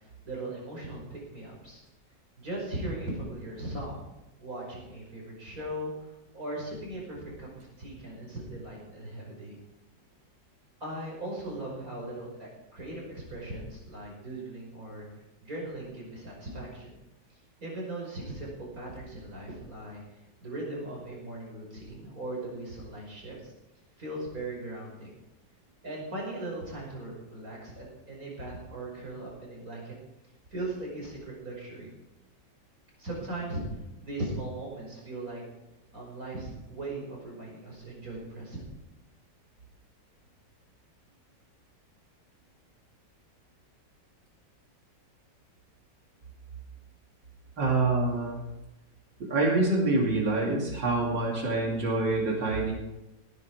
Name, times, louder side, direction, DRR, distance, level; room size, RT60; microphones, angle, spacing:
voice 1, 0.0-1.8 2.4-4.0 4.4-9.6 10.8-15.1 15.4-16.9 17.3-23.5 24.0-25.1 25.8-30.0 30.5-31.9 33.0-33.6 34.0-35.4 35.9-38.7, right 1 dB, 50° right, -2 dB, 6.0 m, -39 dB
voice 2, 47.6-48.4 49.3-52.7, right 2 dB, 90° right, -1 dB, 3.3 m, -26 dB
17.5 x 10.5 x 4.8 m, 0.97 s
omnidirectional pair, 1.9 m